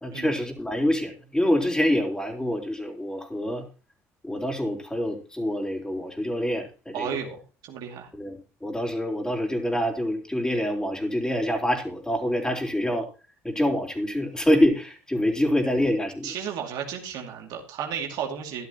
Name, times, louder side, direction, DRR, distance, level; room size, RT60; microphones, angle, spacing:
voice 1, 0.0-3.7 4.2-7.2 8.1-13.1 13.4-16.3, equal, 10° left, 1 dB, 3.8 m, -26 dB
voice 2, 6.9-8.1 16.2-18.7, right 8 dB, 65° right, 2 dB, 2.4 m, -33 dB
13.5 x 11.5 x 2.9 m, 0.34 s
hypercardioid pair, 60°, 7 cm